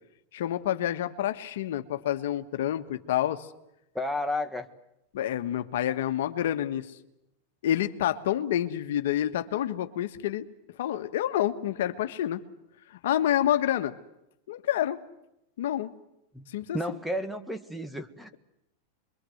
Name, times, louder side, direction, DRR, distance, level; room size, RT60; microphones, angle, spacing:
voice 1, 0.3-3.5 5.1-6.9 7.6-10.5 10.8-12.4 12.9-13.9 14.5-15.0 15.6-15.9 16.5-16.8, left 11 dB, 75° left, 9 dB, 1.4 m, -28 dB
voice 2, 4.0-4.7 16.3-16.5 16.7-18.3, left 1 dB, ahead, 10 dB, 1.7 m, -32 dB
27.0 x 23.0 x 8.0 m, 0.84 s
supercardioid pair, 125°, 0 cm